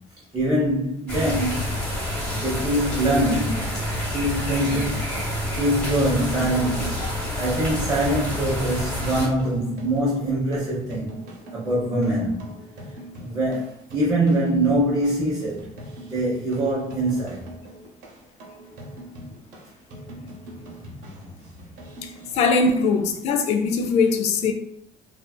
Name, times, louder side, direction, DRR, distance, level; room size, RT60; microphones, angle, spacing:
voice 1, 0.3-1.7 2.3-3.8 4.1-5.0 5.5-7.0 7.4-11.2 11.5-12.4 13.2-15.7 16.1-17.5, right 1 dB, 30° right, 0.6 m, -23 dB
sound 1, 1.1-9.3, left 1 dB, 5° left, 1.1 m, -28 dB
sound 2, 8.2-22.3, equal, 80° right, 0.8 m, -42 dB
voice 2, 22.0-24.5, left 4 dB, 50° left, 0.4 m, -21 dB
2.5 x 2.4 x 2.2 m
cardioid pair, 125°, 14 cm